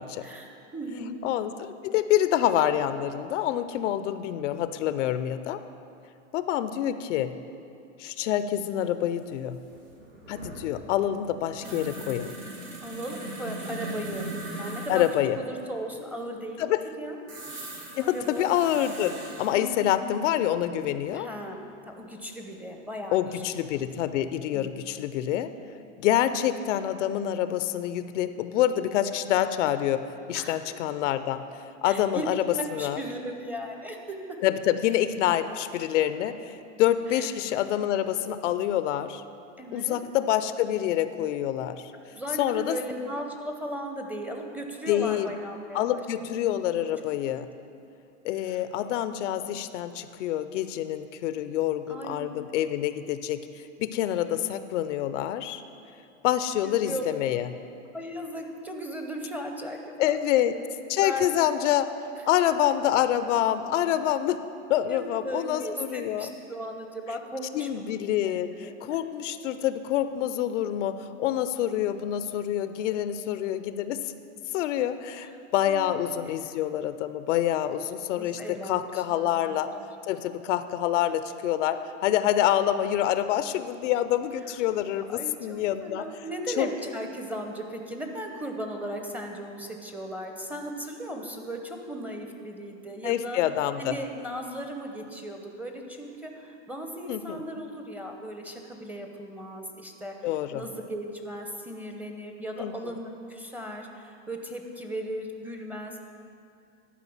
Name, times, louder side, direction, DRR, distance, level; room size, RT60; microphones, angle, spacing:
voice 1, 0.2-1.2 12.8-14.3 14.6-15.1 15.4-16.6 17.0-17.2 18.0-18.5 19.5-20.1 21.1-21.6 21.9-23.2 23.7-23.9 24.5-24.7 30.3-30.7 31.8-32.3 32.5-34.4 37.1-37.3 39.6-40.0 42.1-46.0 48.5-48.6 51.9-52.4 56.6-57.1 57.9-60.4 61.0-61.2 62.2-62.3 64.9-67.8 68.6-69.0 75.7-76.1 78.2-78.8 79.1-79.7 85.1-93.4 93.8-106.0, equal, 5° right, 3 dB, 0.7 m, -37 dB
voice 2, 1.2-5.6 6.3-7.4 8.0-9.6 10.3-12.3 14.9-15.4 16.6-16.8 18.0-19.1 19.4-21.3 23.1-25.5 26.0-31.4 31.8-32.4 32.7-33.0 34.4-39.2 39.7-41.9 42.4-42.8 44.9-45.3 45.7-47.5 48.2-53.4 53.8-55.6 56.2-57.5 60.0-60.6 60.9-61.9 62.2-64.4 64.7-66.3 67.5-74.0 74.5-79.7 80.1-86.0 86.6-86.7 93.0-94.0 97.1-97.4 100.2-100.6 102.6-102.7, left 11 dB, 70° left, 12 dB, 0.6 m, -27 dB
sound 1, 9.2-9.3 9.5-15.2 17.3-19.5 21.7-21.8 23.3-24.0 24.3-24.4, right 1 dB, 90° right, 2.5 m, -39 dB
11.5 x 4.8 x 7.1 m, 2.6 s
hypercardioid pair, 120°, 37 cm